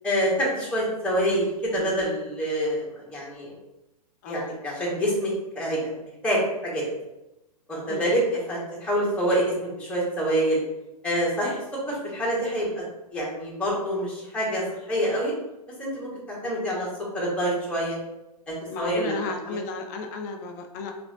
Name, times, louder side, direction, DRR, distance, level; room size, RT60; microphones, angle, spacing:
voice 1, 0.0-3.6 4.2-6.9 7.7-8.2 8.5-10.6 11.0-11.6 11.9-12.7 13.1-14.6 14.9-15.3 15.8-16.9 17.1-18.0 18.5-19.1 19.5-19.6, equal, 5° left, -5 dB, 1.2 m, -26 dB
voice 2, 18.7-20.9, left 4 dB, 25° left, 4 dB, 0.4 m, -34 dB
4.8 x 2.6 x 2.4 m, 0.94 s
figure-of-eight pair, 115°, 21 cm